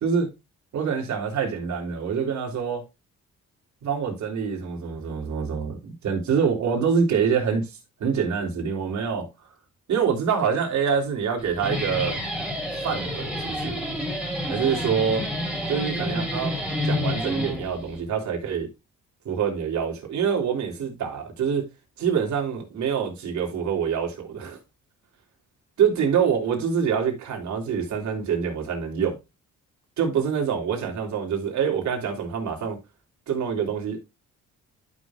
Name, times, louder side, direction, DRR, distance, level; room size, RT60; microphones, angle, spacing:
voice 1, 0.7-2.8 3.8-7.7 8.0-9.3 9.9-12.2 12.8-13.8 14.4-15.3 15.7-16.5 16.8-18.7 19.2-21.7 22.0-24.6 25.8-29.2 30.0-32.8 33.3-34.0, right 6 dB, 70° right, 3.3 m, -25 dB
Guitar, 11.4-18.0, equal, 5° right, 3.6 m, -29 dB
12.0 x 6.3 x 2.4 m
cardioid pair, 90°, 30 cm